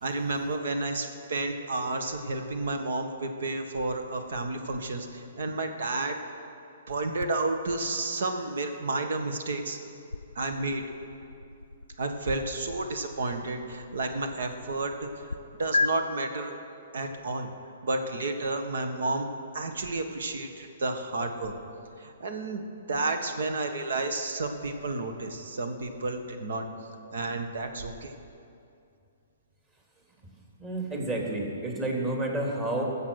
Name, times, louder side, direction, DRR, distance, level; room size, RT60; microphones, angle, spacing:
voice 1, 0.0-6.2 6.9-9.8 10.3-10.8 12.0-15.3 15.6-16.5 16.9-17.5 17.8-19.3 19.5-21.5 22.0-22.6 22.9-26.7 27.1-28.1, right 2 dB, 65° right, 6 dB, 1.4 m, -31 dB
sound 1, 7.2-15.4 15.7-15.9, left 3 dB, 85° left, 0.4 m, -37 dB
voice 2, 30.6-32.8, right 1 dB, 20° right, -1 dB, 2.9 m, -30 dB
20.5 x 7.4 x 6.4 m, 2.5 s
figure-of-eight pair, 120°, 0 cm